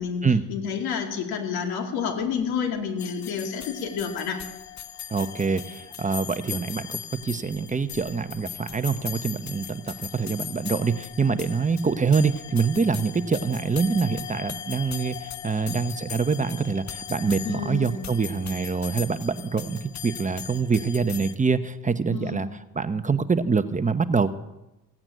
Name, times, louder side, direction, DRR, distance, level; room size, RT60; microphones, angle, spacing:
voice 1, 0.5-4.4 17.4-18.0 22.1-22.4, left 6 dB, 85° left, 3 dB, 2.7 m, -29 dB
sound 1, 3.0-21.4, left 9 dB, 50° left, 0.8 m, -39 dB
voice 2, 5.1-22.5 22.7-24.3, right 5 dB, 20° right, 10 dB, 0.9 m, -25 dB
16.5 x 8.8 x 9.1 m, 0.94 s
cardioid pair, 85°, 37 cm